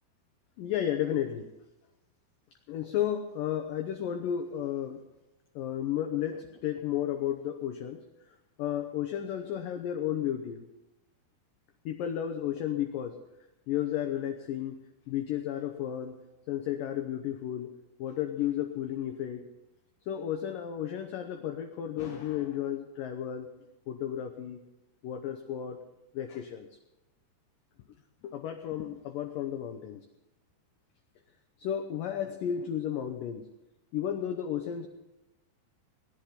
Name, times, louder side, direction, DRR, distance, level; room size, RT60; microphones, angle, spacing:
voice 1, 0.6-1.5 2.7-5.0 5.6-8.0 8.6-10.7 11.9-13.2 13.7-14.8 15.1-16.2 16.5-17.7 18.0-19.5 20.1-23.5 23.9-24.6 25.0-25.8 26.1-26.7 28.2-30.1 31.6-33.5 33.9-34.9, left 10 dB, 75° left, 5 dB, 2.0 m, -33 dB
18.0 x 10.5 x 5.8 m, 1.0 s
omnidirectional pair, 5.0 m